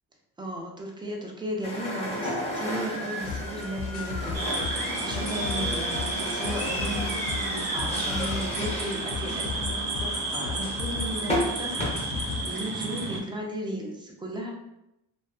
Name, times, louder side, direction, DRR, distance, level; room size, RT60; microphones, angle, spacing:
voice 1, 0.4-14.5, right 1 dB, 10° right, 0 dB, 0.4 m, -35 dB
sound 1, 1.6-11.9, equal, 15° left, 0.8 m, -33 dB
sound 2, 3.2-12.5, left 5 dB, 70° left, 0.5 m, -36 dB
sound 3, 4.3-13.2, right 2 dB, 60° right, 0.7 m, -32 dB
2.6 x 2.4 x 2.3 m, 0.87 s
cardioid pair, 100°, 43 cm